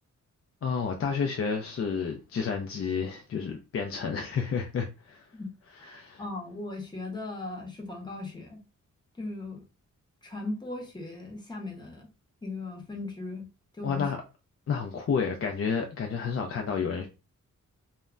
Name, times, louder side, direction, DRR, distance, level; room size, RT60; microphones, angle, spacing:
voice 1, 0.6-5.3 5.9-6.2 13.8-14.2 14.7-17.1, left 6 dB, 45° left, 0.4 m, -30 dB
voice 2, 5.8-8.6 9.2-9.6 10.2-12.1 12.4-13.5 13.7-14.1, left 2 dB, 15° left, 0.7 m, -38 dB
2.1 x 2.1 x 3.6 m
wide cardioid pair, 130°, 32 cm